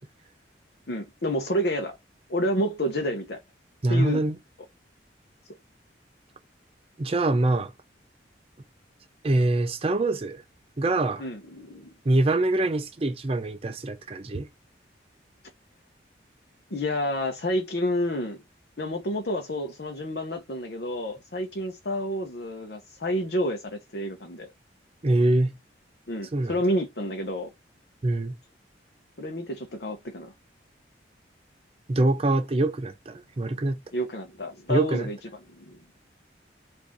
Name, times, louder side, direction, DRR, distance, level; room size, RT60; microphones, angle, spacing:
voice 1, 0.9-1.9 2.3-3.4 3.9-4.2 11.2-11.9 16.7-18.4 18.8-24.5 26.1-27.5 29.2-30.3 33.9-35.2 35.6-35.8, equal, 60° left, 0.8 m, -29 dB
voice 2, 3.8-4.4 7.0-7.7 9.2-10.4 10.8-11.3 12.1-14.5 25.0-25.5 26.3-26.6 28.0-28.4 31.9-33.8 34.7-35.1, right 2 dB, 30° right, 0.4 m, -24 dB
5.0 x 2.6 x 3.6 m
head